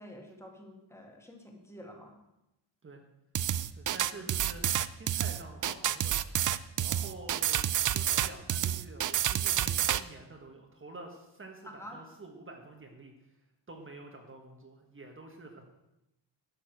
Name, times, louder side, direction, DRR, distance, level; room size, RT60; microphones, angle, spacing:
voice 1, 0.0-2.2 4.1-4.3 11.6-12.1, equal, 5° left, 2 dB, 2.0 m, -48 dB
sound 1, 3.3-10.0, right 11 dB, 45° right, 0.5 m, -29 dB
voice 2, 3.7-6.3 6.8-13.4 13.7-15.6, right 2 dB, 25° right, 2 dB, 1.5 m, -48 dB
12.0 x 6.8 x 7.8 m, 0.90 s
wide cardioid pair, 160°, 45 cm